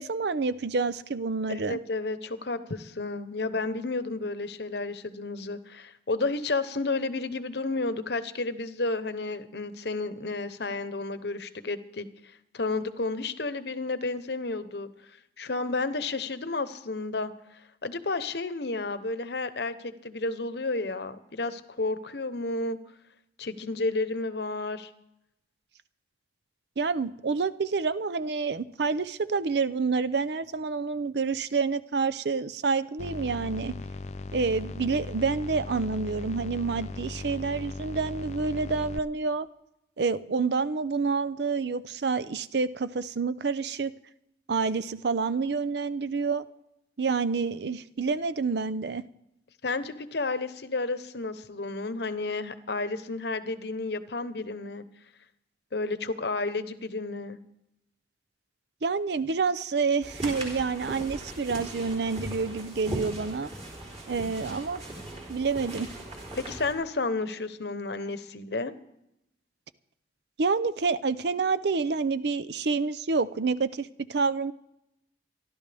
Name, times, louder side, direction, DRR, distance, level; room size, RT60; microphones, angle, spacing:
voice 1, 0.0-1.8 26.8-33.7 34.3-39.5 40.0-43.9 44.5-46.4 47.0-49.0 58.8-63.5 64.1-64.8 65.3-65.9 70.4-74.5, right 4 dB, 65° right, 15 dB, 0.6 m, -28 dB
voice 2, 1.5-12.1 12.5-14.9 15.4-17.3 17.8-22.8 23.4-24.9 49.6-54.8 55.7-57.4 66.3-68.7, left 3 dB, 65° left, 12 dB, 0.9 m, -31 dB
sound 1, 33.0-39.0, left 2 dB, 40° left, 0.4 m, -38 dB
sound 2, 60.0-66.7, right 1 dB, 35° right, 3.8 m, -39 dB
26.5 x 12.0 x 3.5 m, 0.84 s
head